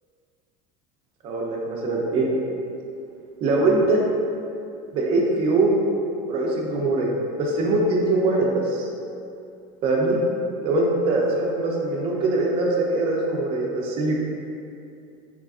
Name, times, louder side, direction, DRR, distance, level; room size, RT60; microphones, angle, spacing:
voice 1, 1.2-2.3 3.4-4.0 4.9-5.8 6.3-8.9 9.8-10.2 10.6-14.1, right 2 dB, 35° right, -1 dB, 0.4 m, -22 dB
3.3 x 2.4 x 2.3 m, 2.5 s
cardioid pair, 160°, 17 cm